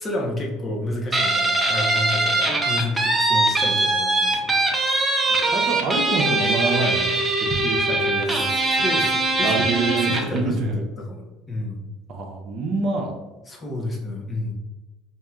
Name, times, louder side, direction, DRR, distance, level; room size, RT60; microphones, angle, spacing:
voice 1, 0.0-4.6 4.8-5.1 8.2-8.4 8.7-11.8 13.5-14.5, left 1 dB, 25° left, -1 dB, 0.9 m, -30 dB
Guitar, 1.1-10.4, right 2 dB, 15° right, 0.8 m, -21 dB
voice 2, 5.5-7.2 7.4-8.5 9.4-10.8 12.1-13.1, right 3 dB, 55° right, 3 dB, 0.7 m, -26 dB
4.2 x 2.8 x 2.4 m, 1.2 s
supercardioid pair, 95°, 0 cm